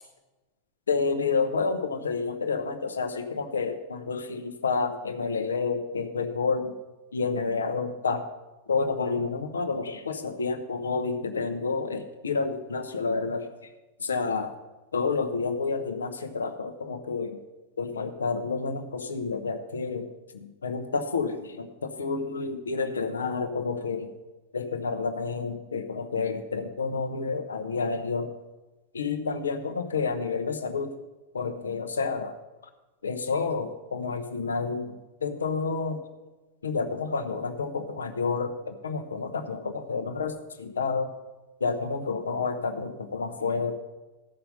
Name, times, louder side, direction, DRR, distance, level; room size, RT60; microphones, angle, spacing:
voice 1, 0.9-6.8 7.1-8.3 8.7-13.5 14.0-14.5 14.9-17.4 17.8-24.1 24.5-28.3 28.9-30.9 31.3-32.4 33.0-36.0 36.6-41.1 41.6-43.7, left 4 dB, 70° left, 8 dB, 0.9 m, -29 dB
14.5 x 5.7 x 5.3 m, 1.1 s
figure-of-eight pair, 90°, 0 cm